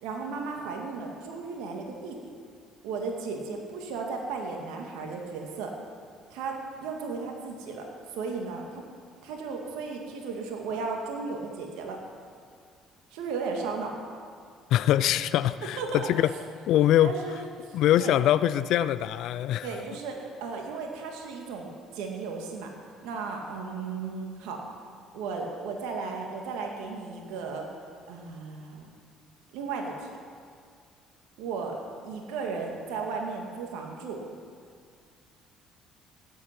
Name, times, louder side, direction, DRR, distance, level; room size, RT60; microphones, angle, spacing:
voice 1, 0.0-2.3 2.8-5.7 6.3-7.8 8.1-8.8 9.2-12.0 13.1-13.9 15.8-16.2 17.0-18.2 19.6-22.7 23.0-24.6 25.1-27.7 28.1-28.9 29.5-30.1 31.4-31.7 32.0-34.2, right 4 dB, 75° right, 1 dB, 1.9 m, -35 dB
voice 2, 14.7-16.3 16.7-17.1 17.7-19.7, left 12 dB, 70° left, 15 dB, 0.4 m, -23 dB
16.5 x 8.4 x 5.9 m, 2.2 s
hypercardioid pair, 65°, 0 cm